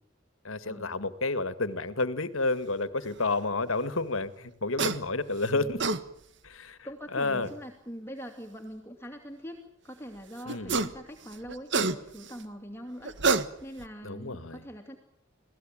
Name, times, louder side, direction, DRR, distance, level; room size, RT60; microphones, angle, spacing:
voice 1, 0.4-5.8 6.4-6.8 7.1-7.5 10.5-10.8 14.0-14.6, left 3 dB, 85° left, 12 dB, 1.9 m, -30 dB
sound 1, 4.8-5.0 5.6-6.0 7.4-7.5 10.5-11.0 11.3-12.3 13.0-13.9, right 4 dB, 60° right, 1.5 m, -27 dB
voice 2, 5.5-5.8 6.8-13.1 13.6-15.0, equal, 10° left, 3 dB, 2.6 m, -43 dB
27.5 x 18.5 x 9.0 m, 0.69 s
head